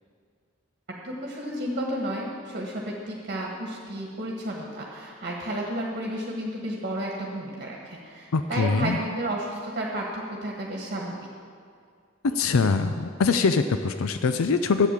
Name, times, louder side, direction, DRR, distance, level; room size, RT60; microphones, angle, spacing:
voice 1, 0.9-11.1, right 1 dB, 45° right, -1 dB, 1.5 m, -32 dB
voice 2, 8.3-9.0 12.2-14.9, left 4 dB, 90° left, 9 dB, 0.5 m, -23 dB
12.0 x 8.3 x 7.4 m, 2.2 s
head